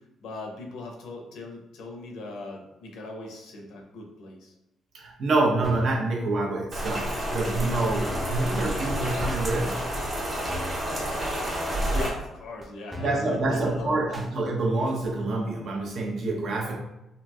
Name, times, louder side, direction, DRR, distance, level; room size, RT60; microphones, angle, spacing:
voice 1, 0.2-4.5 11.8-13.9, left 2 dB, 80° left, 1 dB, 0.6 m, -39 dB
voice 2, 4.9-9.9 13.0-16.8, right 2 dB, 60° right, -1 dB, 0.7 m, -27 dB
sound 1, 5.6-6.0 6.8-7.0 7.8-7.9 8.1-8.4 9.3-9.4 10.2-10.3 10.5-10.8 11.7-11.9 12.6-12.7 12.9-13.3 14.1-14.3 15.0-15.1, left 2 dB, 5° right, 0.5 m, -39 dB
Rain, 6.7-12.1, equal, 35° right, 1.1 m, -29 dB
2.9 x 2.5 x 2.3 m, 0.93 s
cardioid pair, 90°, 0 cm